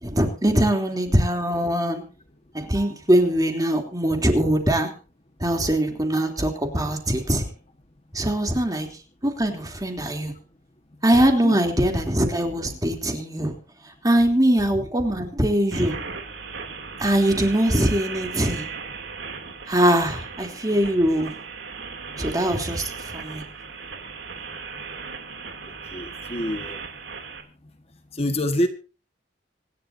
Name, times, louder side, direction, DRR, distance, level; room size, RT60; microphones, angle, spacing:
voice 1, 0.0-2.0 2.5-4.9 5.4-7.5 8.1-8.9 9.2-10.3 11.0-13.5 14.0-16.0 17.0-18.6 19.7-21.3 22.2-23.4, right 1 dB, 20° right, 3 dB, 3.3 m, -22 dB
sound 1, 15.7-27.4, right 5 dB, 85° right, 3.0 m, -37 dB
voice 2, 25.9-26.8 28.2-28.7, left 1 dB, 35° left, 6 dB, 1.6 m, -26 dB
26.0 x 11.5 x 2.8 m, 0.36 s
head